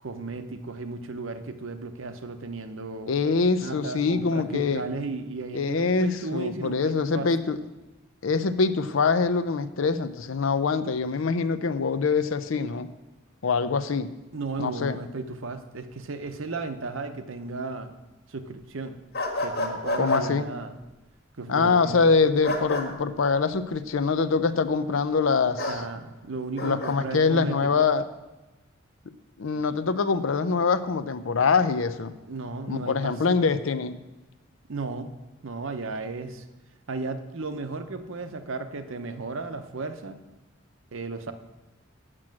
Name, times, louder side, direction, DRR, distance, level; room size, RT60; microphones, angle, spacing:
voice 1, 0.0-3.2 3.6-7.3 14.3-18.0 18.3-19.0 19.4-20.8 21.4-22.0 25.6-27.9 32.3-33.2 34.7-35.2 35.4-36.4 36.9-40.2 40.9-41.3, right 3 dB, 70° right, 9 dB, 0.7 m, -35 dB
voice 2, 3.1-4.9 5.5-7.6 8.2-12.9 13.4-14.1 14.6-15.0 20.0-20.5 21.5-25.8 26.6-28.1 29.4-32.1 32.7-34.0, left 4 dB, 75° left, 12 dB, 0.6 m, -24 dB
sound 1, 19.1-20.2 22.4-22.9 25.6-25.8 26.6-26.9, left 2 dB, 55° left, 1.6 m, -29 dB
7.6 x 6.2 x 7.5 m, 1.1 s
head